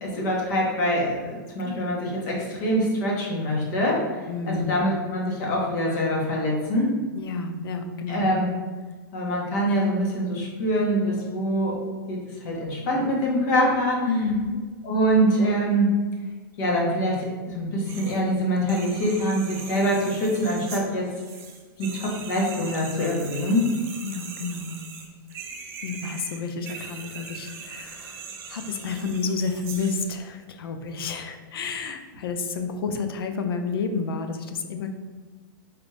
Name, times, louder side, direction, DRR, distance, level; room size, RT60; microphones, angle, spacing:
voice 1, 0.0-4.0 4.5-6.9 8.1-8.5 9.1-11.8 12.1-14.0 14.8-15.9 16.6-21.1 21.8-23.6, equal, 50° left, -2 dB, 1.2 m, -24 dB
voice 2, 4.3-4.8 7.1-8.3 14.0-14.6 24.0-24.8 25.8-34.9, left 4 dB, 85° left, 7 dB, 0.5 m, -30 dB
sound 1, 17.9-18.2 18.6-30.1, right 6 dB, 20° right, 0.4 m, -40 dB
4.1 x 2.6 x 3.3 m, 1.4 s
supercardioid pair, 155°, 12 cm